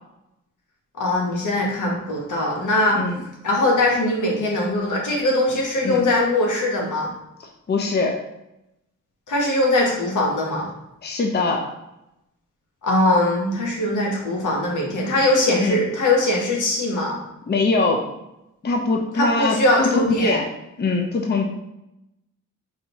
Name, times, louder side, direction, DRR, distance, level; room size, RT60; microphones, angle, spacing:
voice 1, 1.0-3.0 3.4-7.1 9.3-10.7 12.8-17.2 19.2-20.3, left 1 dB, 75° left, -2 dB, 1.2 m, -21 dB
voice 2, 7.7-8.2 11.0-11.7 15.6-15.8 17.5-18.0 18.6-20.5 20.8-21.5, left 3 dB, 35° left, 1 dB, 0.6 m, -22 dB
4.7 x 2.7 x 2.9 m, 0.88 s
cardioid pair, 60°, 31 cm